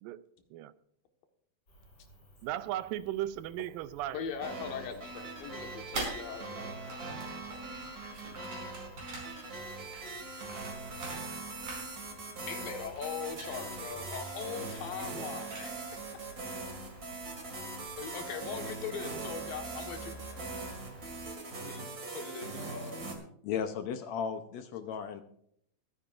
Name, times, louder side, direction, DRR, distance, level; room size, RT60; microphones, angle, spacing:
Cricket, 1.7-21.3, right 1 dB, 30° left, 6.1 m, -54 dB
voice 1, 2.4-4.2, right 13 dB, 85° right, 15 dB, 2.3 m, -36 dB
voice 2, 4.1-6.8 12.5-16.0 18.0-20.1 21.6-21.9 22.1-23.0, left 6 dB, 90° left, 5 dB, 3.3 m, -40 dB
sound 1, 4.4-23.2, right 3 dB, 30° right, 2.2 m, -41 dB
sound 2, 5.1-6.5 6.8-11.4 11.6-12.3 12.5-15.9, right 2 dB, 55° right, 6.4 m, -45 dB
voice 3, 23.4-25.2, left 7 dB, 70° left, 8 dB, 1.8 m, -35 dB
23.0 x 10.5 x 2.6 m, 0.68 s
omnidirectional pair, 3.9 m